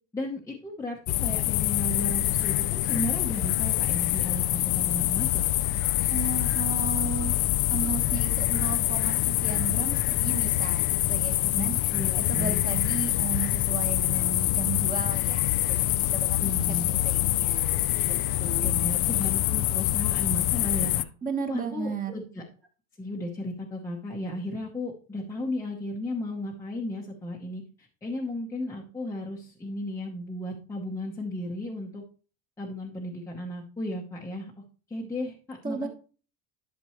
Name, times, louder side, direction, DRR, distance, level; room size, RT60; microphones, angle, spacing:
voice 1, 0.1-5.5 11.4-12.8 16.4-16.9 18.4-21.0 21.5-22.5 23.0-32.0 32.6-34.5 34.9-35.9, left 1 dB, 5° left, -2 dB, 0.9 m, -34 dB
sound 1, 1.1-21.0, left 16 dB, 50° left, 0.4 m, -25 dB
voice 2, 6.1-7.3 7.7-11.7 12.3-16.5 16.8-18.1 18.4-18.9 21.2-22.1 35.6-35.9, right 6 dB, 20° right, 5 dB, 1.3 m, -35 dB
11.5 x 6.0 x 3.0 m, 0.38 s
cardioid pair, 155°, 44 cm